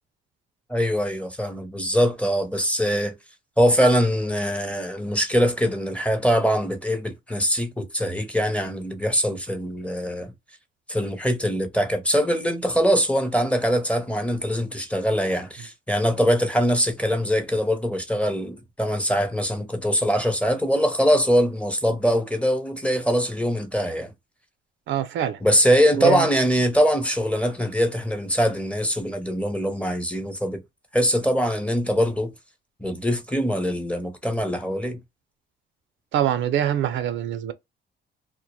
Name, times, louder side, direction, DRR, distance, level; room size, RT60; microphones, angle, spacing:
voice 1, 0.7-3.1 3.6-10.3 10.9-24.1 25.4-30.6 30.9-32.3 32.8-35.0, equal, 5° left, 0.6 m, -22 dB
voice 2, 24.9-25.4 26.0-26.3 36.1-37.5, right 11 dB, 70° right, 0.4 m, -24 dB
2.1 x 2.0 x 2.9 m
cardioid pair, 90°, 20 cm